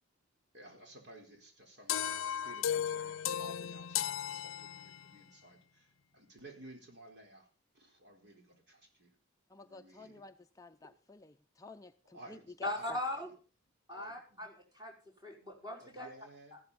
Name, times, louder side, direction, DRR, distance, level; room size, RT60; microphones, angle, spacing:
voice 1, 0.5-7.5 7.7-9.1 9.6-10.2 12.1-13.3 13.9-14.4 15.8-16.6, right 1 dB, 55° right, 2 dB, 4.3 m, -55 dB
sound 1, 1.9-5.2, left 9 dB, 80° left, 0.6 m, -36 dB
voice 2, 9.5-13.0, left 3 dB, 15° left, 6 dB, 0.5 m, -51 dB
voice 3, 12.6-13.3 13.9-14.9 15.2-16.1 16.5-16.6, left 1 dB, 20° right, -1 dB, 5.4 m, -39 dB
14.5 x 12.5 x 4.1 m, 0.38 s
head